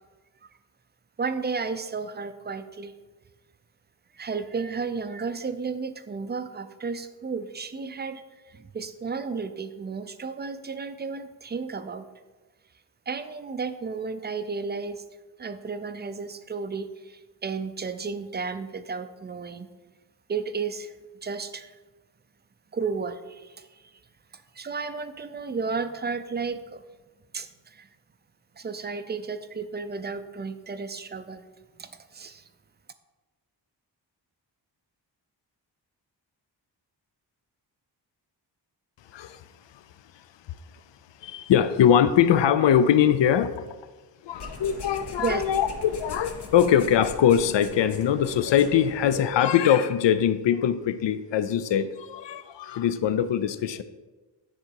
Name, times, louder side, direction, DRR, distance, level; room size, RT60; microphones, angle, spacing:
voice 1, 1.2-2.9 4.1-12.1 13.1-15.0 15.4-19.7 20.3-20.9 21.2-21.7 22.7-24.0 24.3-26.8 27.3-27.9 28.6-31.4 31.8-32.5 45.2-45.4, right 5 dB, 25° right, 10 dB, 0.4 m, -33 dB
voice 2, 39.1-39.4 39.7-39.8 40.5-40.6 41.2-43.8 44.2-53.8, left 9 dB, 80° left, 12 dB, 0.5 m, -22 dB
sound 1, 44.3-49.3, left 3 dB, 65° left, 1.0 m, -41 dB
9.9 x 3.8 x 4.5 m, 1.2 s
wide cardioid pair, 115°, 43 cm